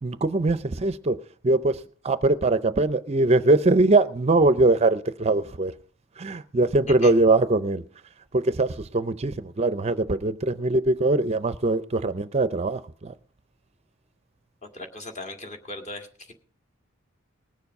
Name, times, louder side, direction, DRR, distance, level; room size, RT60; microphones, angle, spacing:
voice 1, 0.0-5.7 6.2-7.8 8.3-13.1, right 2 dB, 30° right, 0.5 m, -22 dB
voice 2, 14.6-16.3, left 2 dB, 35° left, 1.9 m, -38 dB
19.5 x 7.1 x 5.3 m
head